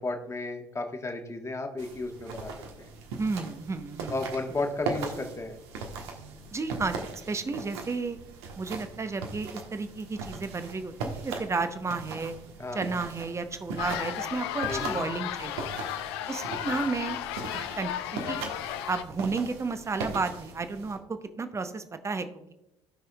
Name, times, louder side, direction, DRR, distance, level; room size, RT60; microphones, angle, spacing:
voice 1, 0.0-2.5 2.8-2.9 4.1-5.6 12.6-12.8 14.7-15.0, left 2 dB, 20° left, 3 dB, 1.5 m, -33 dB
sound 1, 1.8-21.0, right 4 dB, 65° right, 1.3 m, -39 dB
voice 2, 3.2-4.2 6.5-7.0 7.3-8.2 8.6-12.3 12.7-15.7 16.3-17.2 17.5-17.9 18.3-18.4 18.9-22.5, right 4 dB, 20° right, 9 dB, 0.9 m, -32 dB
sound 2, 13.8-19.0, left 11 dB, 65° left, 0.5 m, -34 dB
17.0 x 6.1 x 2.4 m, 0.89 s
figure-of-eight pair, 60°, 14 cm